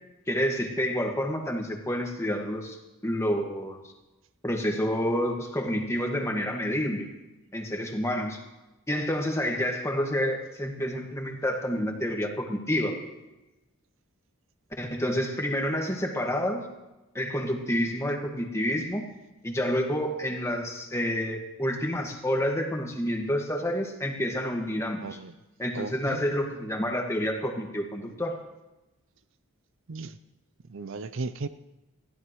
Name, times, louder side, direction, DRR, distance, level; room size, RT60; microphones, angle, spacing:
voice 1, 0.3-2.8 3.0-3.8 4.4-7.1 7.5-8.4 8.9-13.0 14.8-16.6 17.1-19.1 19.4-25.0 25.6-28.3, equal, 10° left, 2 dB, 1.7 m, -28 dB
voice 2, 25.0-25.3 25.7-26.2 29.9-30.2 30.7-31.5, right 3 dB, 55° right, 12 dB, 0.5 m, -35 dB
21.0 x 15.0 x 3.1 m, 1.0 s
head